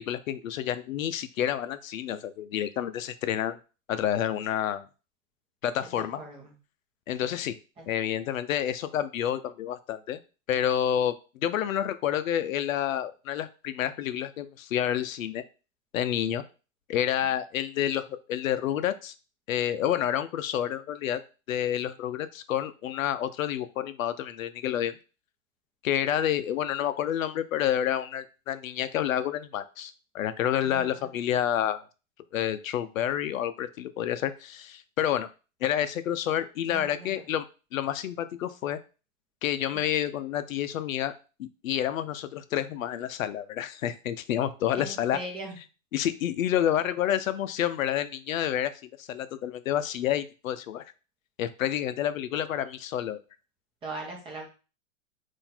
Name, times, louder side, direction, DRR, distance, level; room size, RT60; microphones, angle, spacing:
voice 1, 0.0-3.6 3.9-4.9 5.6-6.2 7.1-7.6 7.9-10.2 10.5-11.2 11.4-15.4 15.9-16.4 16.9-19.1 19.5-21.2 21.5-25.0 25.8-31.8 32.3-35.3 35.6-37.5 37.7-38.8 39.4-41.1 41.4-45.2 45.9-48.7 49.0-50.8 51.4-53.2, left 10 dB, 85° left, 12 dB, 0.6 m, -29 dB
voice 2, 6.0-6.5 7.2-7.4 7.8-7.9 30.6-31.1 36.7-37.3 39.7-39.8 44.8-45.6 53.8-54.5, right 2 dB, 15° right, 0 dB, 0.9 m, -40 dB
3.8 x 2.6 x 4.3 m, 0.33 s
hypercardioid pair, 145°, 39 cm